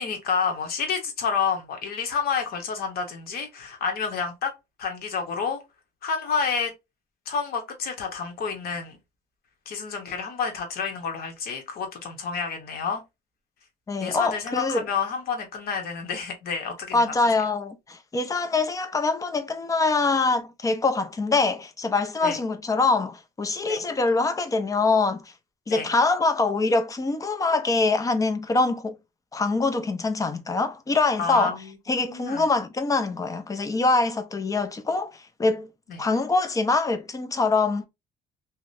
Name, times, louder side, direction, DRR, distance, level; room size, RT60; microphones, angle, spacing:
voice 1, 0.0-4.5 4.8-5.6 6.0-6.7 7.3-9.0 9.7-13.0 14.0-17.1 22.2-22.4 23.7-23.9 25.7-25.9 31.2-31.8 32.0-32.5 35.9-36.0, left 6 dB, 65° left, 0.9 m, -29 dB
voice 2, 13.9-14.8 16.9-25.2 25.7-29.0 29.3-31.6 31.9-35.7 36.0-37.9, left 3 dB, 20° left, 0.4 m, -24 dB
2.7 x 2.0 x 2.5 m
cardioid pair, 110°, 17 cm